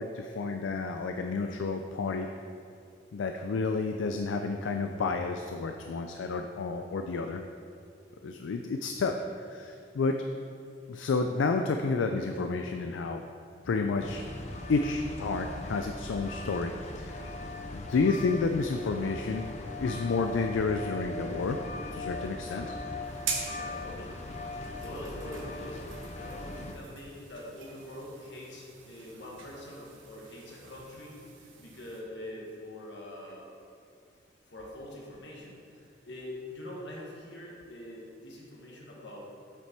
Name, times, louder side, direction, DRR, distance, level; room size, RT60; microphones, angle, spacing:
voice 1, 0.0-2.3 3.1-7.4 8.2-10.2 10.9-13.2 13.6-14.2 14.7-17.2 17.7-19.5 19.8-21.6 21.9-22.7, left 4 dB, 85° left, 5 dB, 0.4 m, -30 dB
sound 1, 14.0-26.7, left 2 dB, 35° left, 0.6 m, -39 dB
sound 2, 23.0-32.0, right 5 dB, 85° right, 1.2 m, -43 dB
voice 2, 23.5-24.1 24.8-25.8 26.2-31.2 31.6-33.4 34.5-39.3, left 1 dB, 70° left, -3 dB, 1.6 m, -44 dB
7.8 x 5.9 x 4.4 m, 2.6 s
head